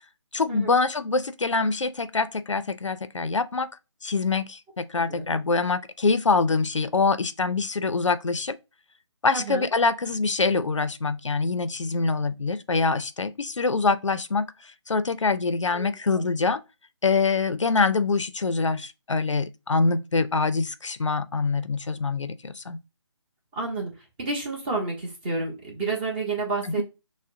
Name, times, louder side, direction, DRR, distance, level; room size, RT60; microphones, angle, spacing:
voice 1, 0.3-3.7 4.0-8.6 9.2-14.5 14.9-16.6 17.0-22.8 26.6-26.8, left 4 dB, 75° left, 0.5 m, -25 dB
voice 2, 4.9-5.4 9.3-9.7 15.7-16.3 23.5-23.9 24.2-26.8, right 3 dB, 20° right, 1.0 m, -30 dB
6.1 x 2.1 x 2.6 m
figure-of-eight pair, 150°, 16 cm